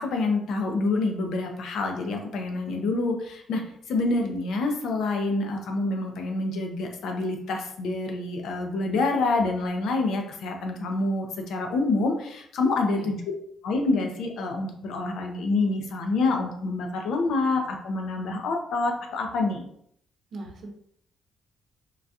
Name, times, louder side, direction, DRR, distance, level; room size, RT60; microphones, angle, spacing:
voice 1, 0.0-3.6 3.9-13.2 13.6-19.7, left 3 dB, 75° left, 3 dB, 0.6 m, -27 dB
voice 2, 20.3-20.7, right 2 dB, 60° right, 2 dB, 0.7 m, -39 dB
3.8 x 2.3 x 2.7 m, 0.68 s
cardioid pair, 90°, 0 cm